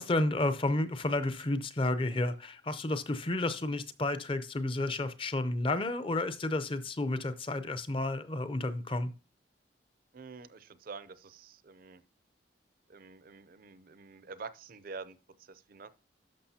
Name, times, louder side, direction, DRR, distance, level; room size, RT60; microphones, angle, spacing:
voice 1, 0.0-9.1, left 2 dB, 30° left, 0.6 m, -31 dB
voice 2, 10.1-12.0 12.9-15.9, right 4 dB, 50° right, 0.5 m, -47 dB
11.5 x 6.3 x 2.8 m
head